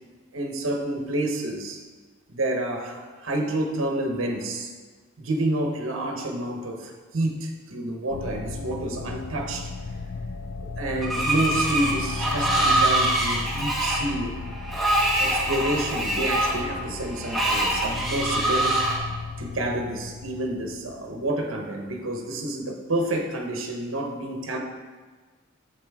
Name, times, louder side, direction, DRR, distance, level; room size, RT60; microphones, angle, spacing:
voice 1, 0.3-1.8 2.3-4.7 5.2-9.7 10.8-14.3 15.2-18.8 19.4-24.6, right 1 dB, 80° right, 2 dB, 1.0 m, -29 dB
sound 1, 8.1-21.4, left 4 dB, 75° left, 0.5 m, -35 dB
Screech, 11.0-19.0, right 1 dB, ahead, 1.3 m, -24 dB
8.6 x 7.2 x 3.6 m, 1.4 s
head